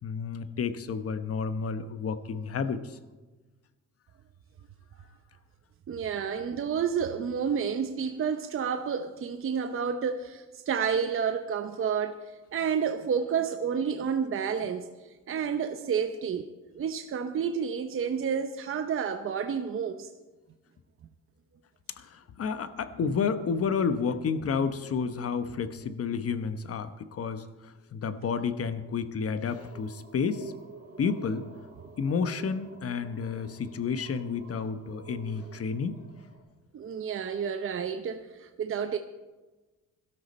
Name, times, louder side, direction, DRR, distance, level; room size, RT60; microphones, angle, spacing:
voice 1, 0.0-3.0 22.0-30.5 31.0-31.4 32.0-36.0, left 5 dB, 50° left, 1.1 m, -31 dB
voice 2, 5.9-16.5 16.7-20.1 36.7-39.0, right 7 dB, 45° right, 0.8 m, -30 dB
sound 1, 29.5-36.4, right 3 dB, 60° right, 4.4 m, -49 dB
17.0 x 12.5 x 4.3 m
cardioid pair, 90°, 30 cm